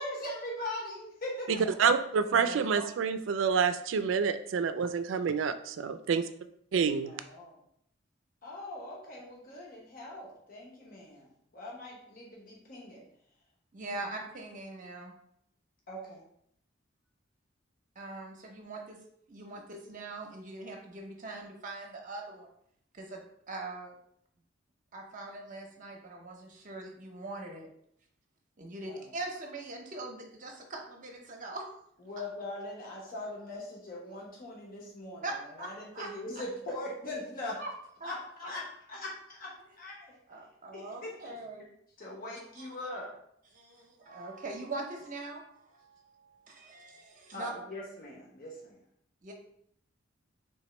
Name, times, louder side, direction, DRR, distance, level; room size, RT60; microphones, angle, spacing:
voice 1, 0.0-2.2 7.0-7.6 8.4-13.0 15.9-16.2 28.9-29.0 32.1-35.2 35.6-37.6 38.0-38.1 38.4-38.6 38.9-39.5 39.8-40.1 40.7-41.3 42.0-43.1 47.3-48.8, left 1 dB, 50° left, 1.1 m, -41 dB
voice 2, 1.8-6.2 6.7-7.1, right 6 dB, 75° right, 0.4 m, -28 dB
voice 3, 2.3-2.8 13.7-15.1 17.9-22.5 22.9-23.2 23.5-24.0 24.9-27.7 28.6-31.7 35.2-36.1 36.3-36.4 37.6-37.7 38.0-38.1 40.3-41.7 42.6-42.7 43.5-47.5 49.2-49.3, right 2 dB, 40° right, 0.7 m, -42 dB
3.5 x 3.0 x 4.3 m
head